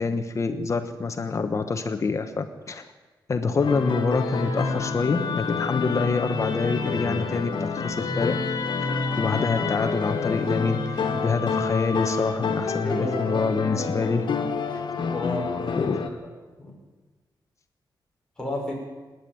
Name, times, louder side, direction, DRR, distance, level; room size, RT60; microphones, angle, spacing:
voice 1, 0.0-2.8 3.3-8.3 8.8-14.2 14.7-14.8 15.7-16.0, left 4 dB, 40° left, 7 dB, 1.2 m, -26 dB
sound 1, 3.6-16.1, left 5 dB, 75° left, 2.0 m, -30 dB
Musical instrument, 3.6-12.8, left 4 dB, 60° left, 3.0 m, -32 dB
voice 2, 12.8-13.4 15.1-15.9 16.2-16.3 16.6-16.7 18.4-18.7, left 1 dB, 10° left, -3 dB, 6.4 m, -31 dB
27.0 x 10.5 x 9.3 m, 1.3 s
wide cardioid pair, 170°, 8 cm